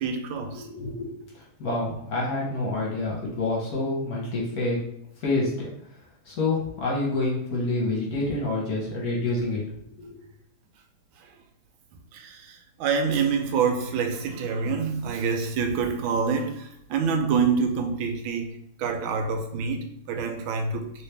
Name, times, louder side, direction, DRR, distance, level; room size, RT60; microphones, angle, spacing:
voice 1, 0.0-0.7 12.1-18.5 18.8-20.8, right 5 dB, 90° right, 5 dB, 1.4 m, -26 dB
voice 2, 0.5-4.8 5.2-5.7 6.2-9.6 10.0-10.2, left 2 dB, 55° left, -3 dB, 1.3 m, -28 dB
3.1 x 3.1 x 3.3 m, 0.73 s
omnidirectional pair, 2.1 m